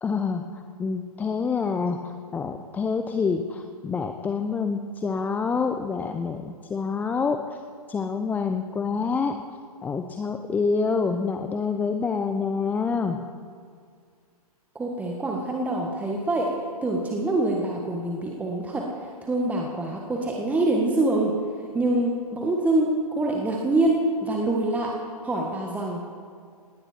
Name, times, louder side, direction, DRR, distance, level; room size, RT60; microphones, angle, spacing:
voice 1, 0.0-7.6 7.9-9.4 9.8-13.2, left 5 dB, 10° left, 6 dB, 0.6 m, -27 dB
voice 2, 14.7-21.4 21.7-24.9 25.2-26.0, right 2 dB, 10° right, -1 dB, 1.5 m, -25 dB
19.0 x 16.5 x 4.5 m, 2.1 s
figure-of-eight pair, 125°, 20 cm